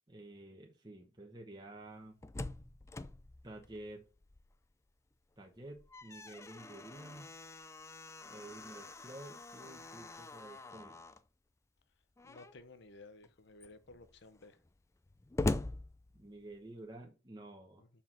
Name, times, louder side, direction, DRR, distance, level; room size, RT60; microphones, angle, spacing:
voice 1, 0.1-2.2 3.4-4.0 5.4-7.3 8.3-11.0 16.1-17.8, right 1 dB, 20° right, 1.0 m, -51 dB
Slam, 1.9-4.7 5.1-5.2 5.6-11.3 12.2-12.7 13.2-13.3 13.6-16.7, left 2 dB, 15° left, 0.3 m, -43 dB
voice 2, 12.2-14.6 17.8-17.9, left 2 dB, 55° left, 0.8 m, -55 dB
5.8 x 4.7 x 5.9 m
head